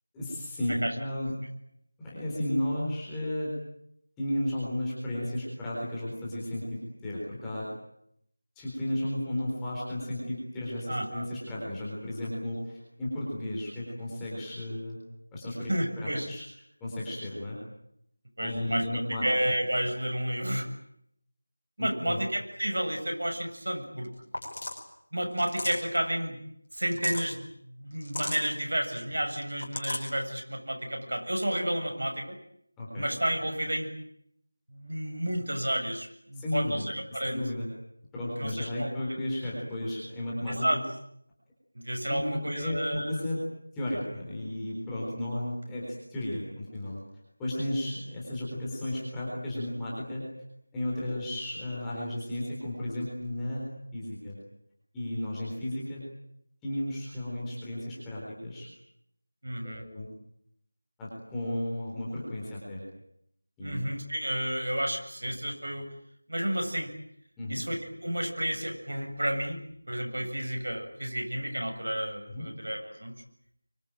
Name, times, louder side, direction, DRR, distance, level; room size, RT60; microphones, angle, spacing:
voice 1, 0.1-1.3 2.0-3.5 4.2-7.7 8.6-15.0 15.3-16.4 16.8-17.6 18.4-19.3 21.8-22.2 32.8-33.1 36.4-36.8 37.1-37.6 38.1-40.7 42.1-43.4 43.7-47.0 47.4-50.2 50.7-54.4 54.9-56.0 56.6-58.7 59.6-60.1 61.0-62.8 63.6-63.9 67.4-67.6 72.3-72.5, left 1 dB, 5° left, -8 dB, 4.0 m, -34 dB
voice 2, 10.9-11.2 15.7-16.3 18.4-18.8 19.2-20.7 21.8-24.1 25.1-26.4 26.7-27.5 27.8-32.4 33.0-33.9 34.7-37.4 38.4-38.9 40.5-40.8 41.7-43.1 59.4-59.8 63.6-65.8 66.3-66.9 67.5-69.6 69.9-73.1, right 1 dB, 80° right, 4 dB, 7.4 m, -31 dB
sound 1, 24.0-24.1 24.3-24.8 25.4-26.0 26.7-27.3 28.0-28.5 29.4-30.1, left 2 dB, 35° left, 5.2 m, -36 dB
25.0 x 24.5 x 9.1 m, 0.76 s
figure-of-eight pair, 180°, 0 cm